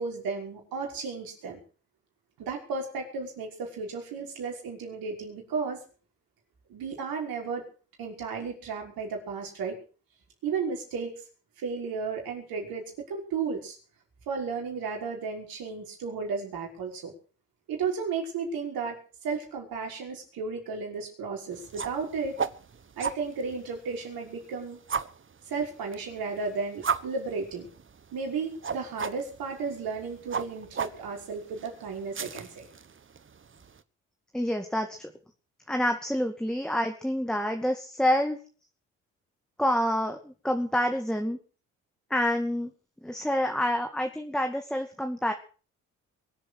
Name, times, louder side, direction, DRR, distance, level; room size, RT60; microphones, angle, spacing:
voice 1, 0.0-1.6 2.4-5.8 6.7-7.7 8.0-9.8 10.4-11.1 11.6-13.8 14.3-17.1 17.7-22.4 23.0-24.8 25.5-27.7 28.1-32.7, right 5 dB, 70° right, 1 dB, 5.8 m, -34 dB
sound 1, 21.5-33.8, right 6 dB, 35° right, 1.2 m, -37 dB
voice 2, 34.3-35.1 35.7-38.4 39.6-41.4 42.1-42.7 43.0-45.3, equal, ahead, 5 dB, 2.3 m, -27 dB
23.0 x 7.8 x 6.5 m, 0.40 s
hypercardioid pair, 50°, 36 cm